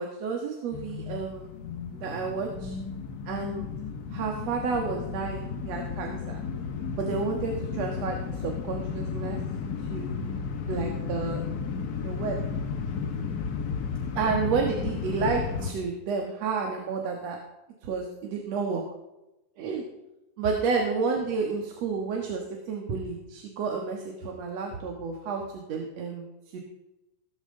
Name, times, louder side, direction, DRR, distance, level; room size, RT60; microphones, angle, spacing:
voice 1, 0.0-1.5 1.9-2.8 3.3-3.7 4.1-6.4 7.0-9.4 9.9-10.1 10.7-11.4 12.0-12.4 14.2-17.4 17.8-18.8 19.6-19.8 20.4-26.6, right 5 dB, 60° right, 1 dB, 2.6 m, -31 dB
sound 1, 0.7-15.7, left 5 dB, 75° left, 0.8 m, -33 dB
17.0 x 13.5 x 3.8 m, 0.98 s
omnidirectional pair, 3.4 m